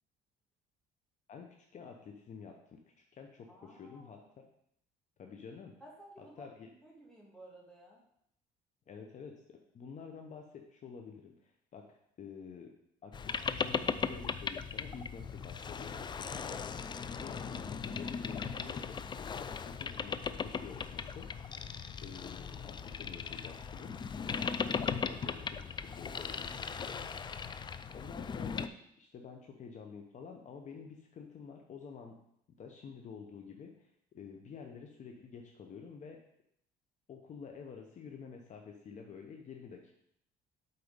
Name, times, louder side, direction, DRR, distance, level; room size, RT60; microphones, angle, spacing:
voice 1, 1.3-4.5 5.2-5.7 6.2-6.7 8.9-12.7 13.0-16.8 17.1-19.0 19.6-21.3 22.0-26.9 27.9-28.7 29.0-32.2 32.6-36.2 37.1-39.9, left 6 dB, 45° left, 3 dB, 0.9 m, -49 dB
voice 2, 3.5-4.2 5.8-8.0, right 1 dB, 5° left, -4 dB, 2.5 m, -55 dB
Boat Water vehicle, 13.1-28.7, left 6 dB, 25° left, 0.4 m, -38 dB
8.1 x 4.2 x 5.2 m, 0.72 s
cardioid pair, 110°, 17 cm